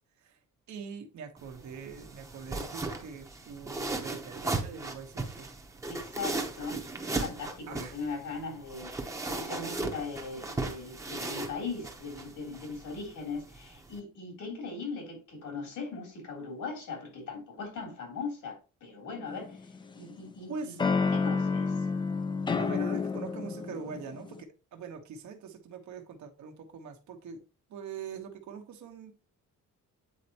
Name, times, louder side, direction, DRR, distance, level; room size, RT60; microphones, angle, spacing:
voice 1, 0.7-5.5 7.7-8.0 20.5-20.8 22.6-27.4 27.7-29.1, right 6 dB, 70° right, 1.2 m, -43 dB
sound 1, 1.4-14.0, right 2 dB, 10° right, 0.8 m, -37 dB
voice 2, 5.9-8.9 9.3-20.8 21.1-21.9, left 4 dB, 85° left, 3.3 m, -39 dB
sound 2, 19.3-20.1 20.8-24.4, left 4 dB, 15° left, 0.4 m, -30 dB
8.4 x 4.4 x 2.9 m
cardioid pair, 175°, 30 cm